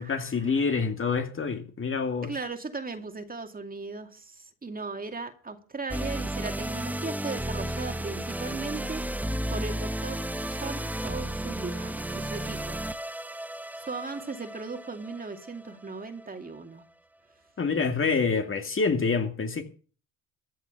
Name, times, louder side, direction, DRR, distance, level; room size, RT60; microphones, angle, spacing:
voice 1, 0.0-2.3 17.6-19.6, left 5 dB, 35° left, 2.3 m, -27 dB
voice 2, 2.2-9.0 9.5-12.8 13.8-16.8, right 4 dB, 25° right, 2.3 m, -37 dB
sound 1, 5.9-16.3, right 1 dB, 5° right, 0.8 m, -33 dB
14.5 x 6.4 x 8.9 m
supercardioid pair, 80°, 38 cm